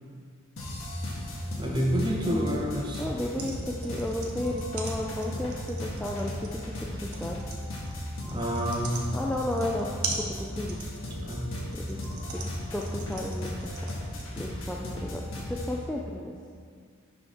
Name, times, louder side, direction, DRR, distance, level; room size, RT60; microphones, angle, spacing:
sound 1, 0.6-15.8, left 1 dB, 70° left, 1.6 m, -36 dB
voice 1, 1.6-3.1 8.3-9.1 11.2-11.6, equal, 20° right, -1 dB, 0.9 m, -28 dB
voice 2, 3.0-7.4 9.1-9.9 10.4-10.8 11.7-12.0 12.3-13.7 14.4-16.4, left 1 dB, 5° left, -3 dB, 0.3 m, -33 dB
sound 2, 3.2-14.3, right 4 dB, 90° right, 1.1 m, -40 dB
11.0 x 5.1 x 3.7 m, 2.1 s
head